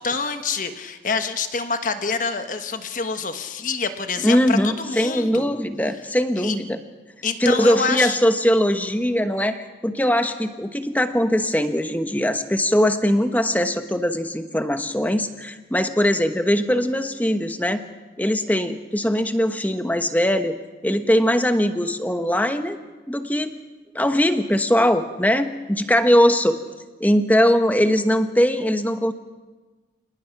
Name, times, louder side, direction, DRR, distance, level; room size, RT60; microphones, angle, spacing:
voice 1, 0.0-5.6 6.4-6.6 7.2-8.2, left 4 dB, 45° left, 8 dB, 1.3 m, -26 dB
voice 2, 4.2-6.8 7.4-17.8 18.2-20.6 20.8-22.8 23.1-23.5 23.9-26.6 27.0-29.1, equal, 10° left, 8 dB, 1.0 m, -21 dB
28.0 x 19.5 x 5.9 m, 1.3 s
head